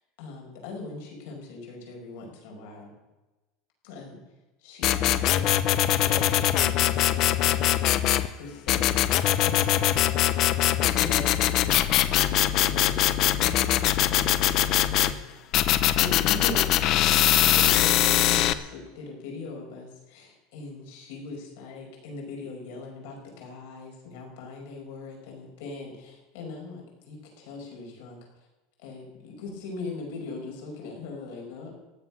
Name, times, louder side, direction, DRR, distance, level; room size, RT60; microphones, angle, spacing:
voice 1, 0.2-2.9 3.8-4.2 4.6-5.6 6.1-7.6 8.3-9.1 9.4-9.9 10.6-14.6 15.0-15.2 16.0-28.2 28.8-31.7, left 3 dB, 70° left, 0 dB, 5.6 m, -40 dB
sound 1, 4.8-8.3 8.7-15.1 15.5-18.5, left 12 dB, 40° left, 0.7 m, -22 dB
15.0 x 11.5 x 6.2 m, 1.1 s
cardioid pair, 175°, 0 cm